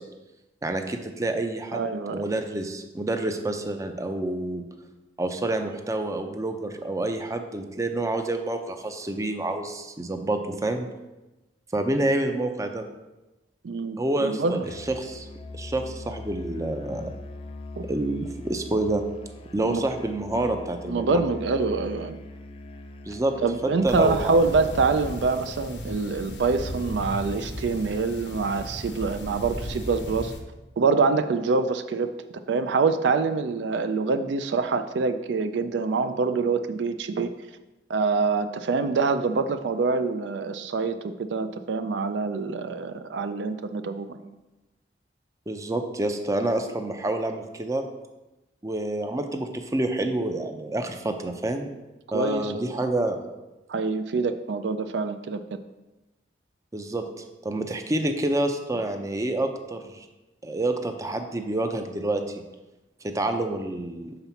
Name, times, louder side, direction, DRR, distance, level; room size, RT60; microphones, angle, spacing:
voice 1, 0.6-1.8 2.1-4.6 5.2-10.9 11.7-12.8 14.0-14.6 14.9-15.3 15.5-17.2 17.9-19.0 19.5-21.2 23.1-23.3 23.6-24.4 45.5-47.8 48.6-51.7 52.1-53.2 56.7-57.0 57.4-60.1 60.4-62.2 63.0-64.2, right 2 dB, 20° right, 6 dB, 0.5 m, -28 dB
voice 2, 1.7-2.3 13.6-14.7 17.8-17.9 19.7-19.8 20.3-20.5 20.9-22.2 23.4-30.3 30.8-32.1 32.5-37.3 37.9-44.3 52.1-52.8 53.7-55.4, right 4 dB, 75° right, 10 dB, 0.4 m, -25 dB
Musical instrument, 14.6-25.0, left 2 dB, 30° left, 0.5 m, -41 dB
sound 1, 23.9-30.4, equal, 80° left, 0.9 m, -36 dB
5.9 x 3.9 x 5.7 m, 1.1 s
head